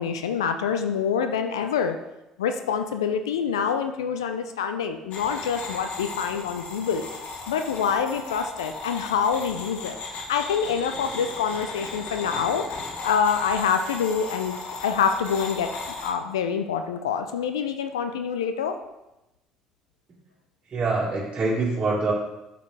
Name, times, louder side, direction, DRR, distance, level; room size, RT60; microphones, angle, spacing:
voice 1, 0.0-2.0 2.4-7.1 7.5-12.7 13.0-15.7 16.0-18.8, left 7 dB, 85° left, 7 dB, 0.4 m, -26 dB
sound 1, 5.1-16.1, left 3 dB, 55° left, 1.4 m, -36 dB
voice 2, 20.7-22.1, right 3 dB, 40° right, -7 dB, 1.9 m, -24 dB
8.1 x 5.4 x 3.3 m, 0.93 s
hypercardioid pair, 60°, 3 cm